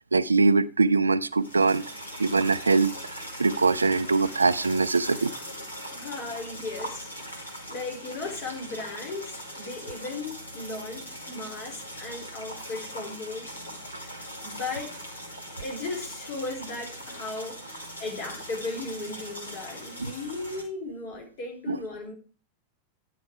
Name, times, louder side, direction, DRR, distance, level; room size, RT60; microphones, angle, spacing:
voice 1, 0.1-1.8 2.2-5.3 20.0-20.1 21.7-21.8, right 3 dB, 80° right, 0.4 m, -23 dB
sound 1, 1.3-20.6, equal, 80° left, 2.3 m, -40 dB
voice 2, 5.9-13.6 14.4-15.0 15.6-22.1, left 3 dB, 40° left, 3.8 m, -36 dB
10.5 x 5.9 x 4.8 m
figure-of-eight pair, 90°, 0 cm